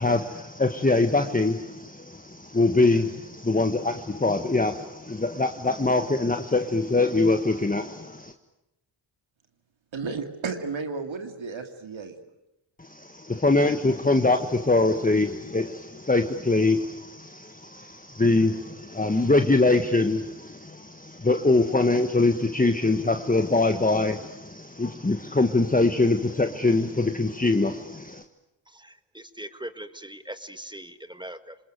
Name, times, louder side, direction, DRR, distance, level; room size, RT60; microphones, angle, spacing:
voice 1, 0.0-8.3 12.8-28.2, left 2 dB, 15° left, 7 dB, 1.4 m, -23 dB
voice 2, 9.9-12.2, right 4 dB, 65° right, 6 dB, 2.5 m, -33 dB
voice 3, 28.7-31.6, right 1 dB, 10° right, 11 dB, 1.7 m, -41 dB
26.5 x 20.5 x 9.4 m, 0.90 s
cardioid pair, 50°, 50 cm